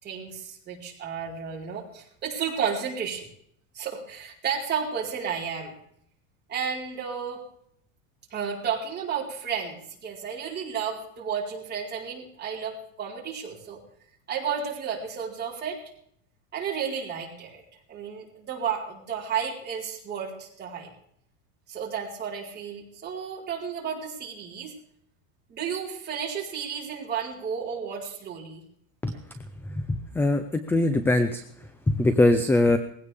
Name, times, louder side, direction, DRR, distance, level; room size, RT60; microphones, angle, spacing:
voice 1, 0.0-3.3 3.7-5.7 6.5-7.4 8.3-13.8 14.3-15.8 16.5-17.6 17.9-20.9 21.7-24.7 25.5-28.6 29.1-29.2, right 7 dB, 25° right, -3 dB, 4.4 m, -32 dB
voice 2, 29.8-30.4 30.7-31.4 31.9-32.8, left 2 dB, 5° left, 10 dB, 0.5 m, -21 dB
20.0 x 16.5 x 3.5 m, 0.68 s
supercardioid pair, 155°, 40 cm